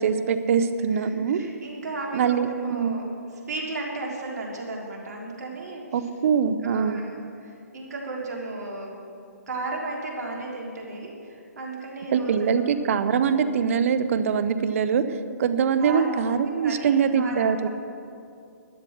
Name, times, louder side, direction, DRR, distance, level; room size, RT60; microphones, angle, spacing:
voice 1, 0.0-1.4 2.1-2.5 2.8-3.1 5.9-7.0 12.1-17.7, right 6 dB, 55° right, 11 dB, 0.9 m, -23 dB
voice 2, 0.9-3.0 3.5-5.8 6.6-9.0 9.5-12.3 13.3-13.5 15.8-16.1 16.5-16.9 17.2-17.7, right 2 dB, 70° right, -1 dB, 3.5 m, -34 dB
12.5 x 10.0 x 6.5 m, 2.5 s
hypercardioid pair, 140°, 9 cm